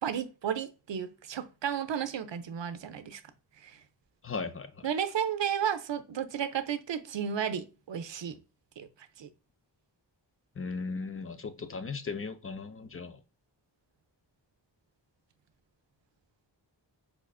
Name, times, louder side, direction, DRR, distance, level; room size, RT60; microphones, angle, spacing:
voice 1, 0.0-3.2 3.6-3.8 4.8-8.4 8.8-8.9 9.2-9.3, right 8 dB, 75° right, 0.6 m, -33 dB
voice 2, 4.2-4.9 10.6-13.2, left 4 dB, 30° left, 0.5 m, -37 dB
4.9 x 2.5 x 2.3 m
wide cardioid pair, 60°, 44 cm